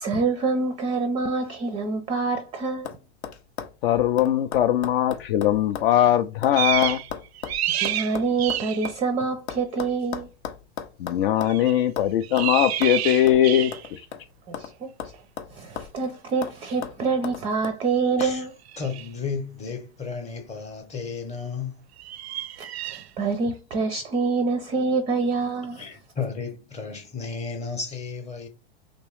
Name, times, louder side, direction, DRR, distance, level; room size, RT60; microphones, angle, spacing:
voice 1, 0.0-2.9 7.8-10.3 14.5-14.9 15.5-18.5 22.8-25.8, right 4 dB, 20° right, 0.4 m, -26 dB
sound 1, 2.1-2.5 2.8-3.0 3.2-5.9 6.2-9.0 9.5-11.6 12.0-12.1 12.4-12.5 12.8-13.0 13.3-13.4 13.7-14.7 15.0-16.0 16.4-16.6 16.8-17.8 18.2-18.3, left 8 dB, 85° left, 0.7 m, -36 dB
voice 2, 3.8-7.0 11.0-14.0, left 11 dB, 60° left, 0.5 m, -21 dB
sound 2, 6.5-7.1 7.3-8.9 11.5-11.8 12.2-13.9 16.7-16.8 18.7-19.1 22.0-23.0, right 12 dB, 75° right, 0.5 m, -29 dB
voice 3, 18.8-21.8 23.9-24.0 25.7-28.5, left 5 dB, 20° left, 0.8 m, -33 dB
3.1 x 2.9 x 3.1 m
hypercardioid pair, 115°, 32 cm